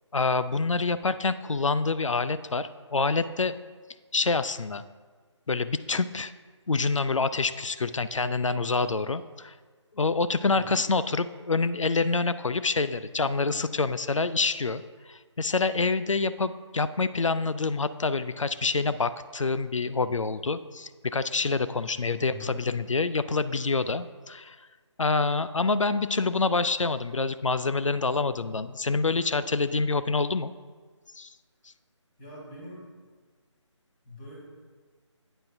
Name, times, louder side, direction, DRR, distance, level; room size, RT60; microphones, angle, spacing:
voice 1, 0.1-3.6 4.1-4.8 5.5-6.3 6.7-9.5 10.0-24.6 25.0-30.5 31.2-31.3, left 3 dB, 85° left, 13 dB, 0.5 m, -27 dB
voice 2, 10.5-10.8 22.1-22.6 32.2-32.9 34.0-34.4, equal, 20° left, -6 dB, 2.6 m, -43 dB
10.5 x 8.9 x 2.6 m, 1.5 s
figure-of-eight pair, 155°, 16 cm